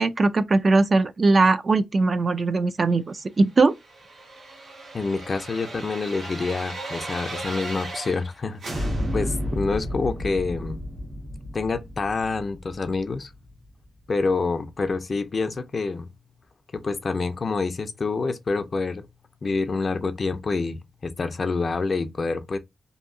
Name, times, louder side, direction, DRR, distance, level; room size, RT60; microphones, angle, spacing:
voice 1, 0.0-3.7, right 3 dB, 45° right, 0.3 m, -20 dB
sound 1, 3.6-8.3 8.6-13.5 13.8-13.9, equal, 80° right, 1.0 m, -33 dB
voice 2, 4.9-10.8 11.5-13.3 14.1-16.1 16.7-19.1 19.4-22.6, left 4 dB, 45° left, 0.5 m, -27 dB
2.8 x 2.6 x 2.5 m
wide cardioid pair, 100°, 0 cm